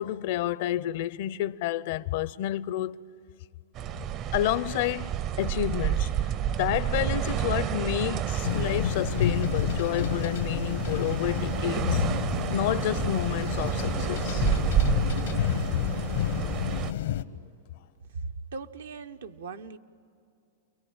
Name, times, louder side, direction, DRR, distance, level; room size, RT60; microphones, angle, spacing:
voice 1, 0.0-3.0 3.9-4.0 4.3-6.1 6.5-12.0 12.5-14.5, left 13 dB, 60° left, 0.7 m, -30 dB
sound 1, 3.8-16.9, right 10 dB, 35° right, 0.7 m, -30 dB
sound 2, 8.4-17.2, left 11 dB, 80° left, 1.2 m, -29 dB
voice 2, 18.2-19.8, right 4 dB, 90° right, 1.2 m, -39 dB
29.5 x 23.0 x 8.9 m
hypercardioid pair, 130°, 0 cm